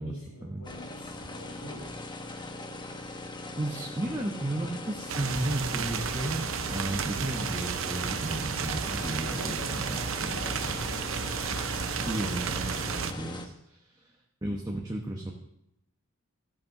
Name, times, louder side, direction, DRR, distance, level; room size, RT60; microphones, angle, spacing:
voice 1, 0.0-1.9 9.2-10.6, left 1 dB, 70° left, -1 dB, 4.3 m, -44 dB
sound 1, 0.6-13.5, left 2 dB, 20° left, 1.0 m, -40 dB
voice 2, 2.9-3.3 3.6-10.8 12.0-14.1 14.4-15.3, right 1 dB, 15° right, 0 dB, 1.1 m, -34 dB
sound 2, 5.1-13.1, right 6 dB, 60° right, 0.7 m, -33 dB
14.0 x 7.6 x 6.5 m, 0.82 s
head